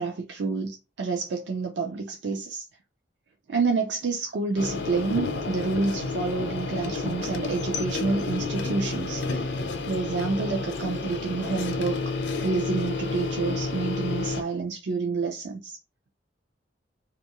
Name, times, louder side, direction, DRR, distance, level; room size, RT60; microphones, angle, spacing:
voice 1, 0.0-2.6 3.5-9.5 9.9-12.0 12.4-15.8, right 4 dB, 70° right, 0.4 m, -28 dB
sound 1, 4.6-14.4, left 3 dB, 70° left, 0.6 m, -30 dB
2.6 x 2.4 x 2.9 m
head